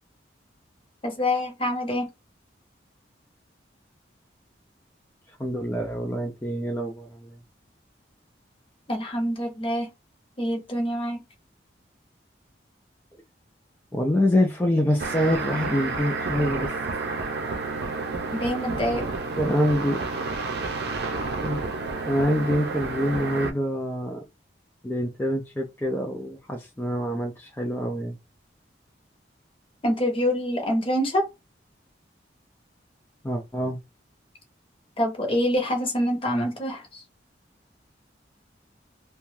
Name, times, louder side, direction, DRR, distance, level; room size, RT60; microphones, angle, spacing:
voice 1, 1.0-2.1 8.9-9.9 10.4-11.2 18.3-19.1 29.8-31.2 35.0-37.0, equal, 30° left, 0.8 m, -26 dB
voice 2, 5.4-7.3 13.9-16.7 19.4-20.0 21.4-21.6 22.0-24.2 24.8-28.2 33.2-33.8, equal, 10° left, 0.4 m, -26 dB
sound 1, 15.0-23.5, right 3 dB, 60° right, 0.6 m, -30 dB
2.6 x 2.2 x 3.1 m
head